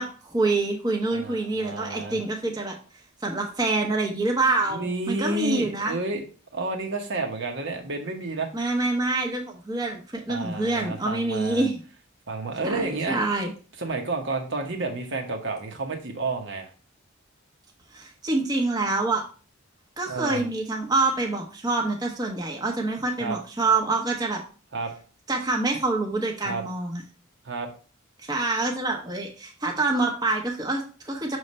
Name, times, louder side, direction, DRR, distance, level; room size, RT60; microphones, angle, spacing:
voice 1, 0.0-2.7 3.2-6.0 8.5-11.8 12.6-13.5 17.9-19.2 20.0-24.4 25.3-27.0 28.2-31.4, right 2 dB, 20° right, 0 dB, 0.9 m, -26 dB
voice 2, 1.1-2.2 4.7-6.2 6.5-8.5 10.3-11.6 12.3-13.2 13.8-16.7 20.1-20.4 23.2-23.4 24.7-24.9 26.4-26.6 27.4-27.7, right 2 dB, 55° right, 3 dB, 1.1 m, -30 dB
6.4 x 3.2 x 5.4 m, 0.37 s
head